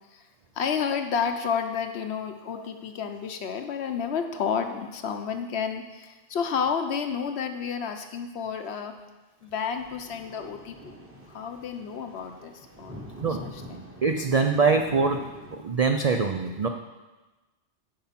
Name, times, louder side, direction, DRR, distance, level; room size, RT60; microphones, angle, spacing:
voice 1, 0.5-8.9 9.4-10.9 11.3-13.0 13.3-13.9 14.6-14.7, left 6 dB, 65° left, 6 dB, 0.9 m, -31 dB
sound 1, 9.8-15.6, equal, 10° right, 1.1 m, -45 dB
voice 2, 14.0-15.2 15.5-16.7, right 4 dB, 65° right, 5 dB, 0.4 m, -23 dB
8.7 x 5.5 x 5.7 m, 1.2 s
omnidirectional pair, 1.3 m